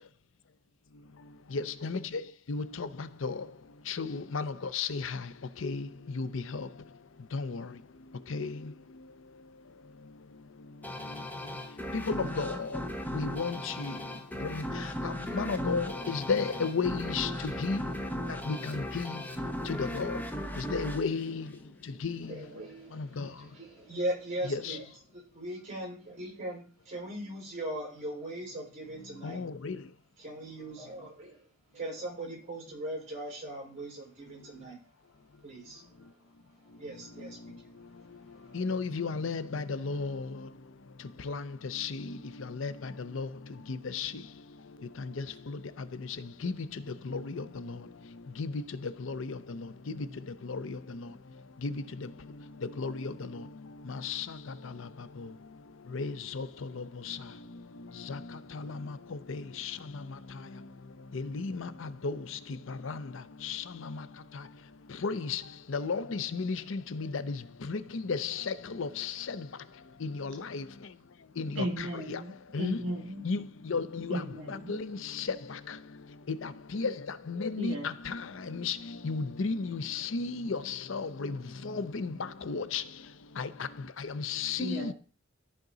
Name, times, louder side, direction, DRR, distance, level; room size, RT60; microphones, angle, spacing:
voice 1, 1.5-2.0 2.5-2.9 3.2-3.3 3.9-5.2 5.6-5.9 6.2-6.3 6.5-6.7 7.3-7.6 8.3-8.5 11.9-12.7 13.1-13.9 14.5-14.6 15.0-17.3 17.6-17.8 18.5-19.2 19.8-20.2 20.7-21.4 22.0-22.3 23.2-23.3 24.5-24.7 29.2-29.8 38.5-40.2 41.3-41.4 41.7-41.9 42.6-42.7 43.1-43.3 43.9-44.1 46.4-46.5 47.3-47.4 48.4-48.5 49.0-49.2 50.5-50.6 52.8-52.9 54.0-54.3 55.9-56.5 59.3-59.7 61.3-61.7 62.0-62.2 62.9-63.0 63.4-63.6 65.0-65.4 65.7-67.3 67.7-69.1 70.0-70.6 71.4-72.2 72.5-72.8 73.2-73.4 73.7-74.2 74.7-74.9 75.2-75.3 76.7-76.9 77.3-77.7 78.1-78.2 78.5-78.8 79.0-81.3 81.6-82.1 82.5-82.8 83.4-83.5 84.2-84.9, left 4 dB, 70° left, 0.6 m, -33 dB
sound 1, 10.8-22.1, left 1 dB, 10° left, 0.9 m, -37 dB
voice 2, 22.2-29.4 30.2-31.5 31.7-34.8 35.4-36.2 36.7-37.7 38.3-38.7, right 1 dB, 35° right, 5.2 m, -39 dB
voice 3, 71.6-73.2 74.1-74.8 77.6-77.9 84.6-84.9, right 1 dB, 65° right, 2.4 m, -36 dB
13.5 x 5.2 x 3.9 m
head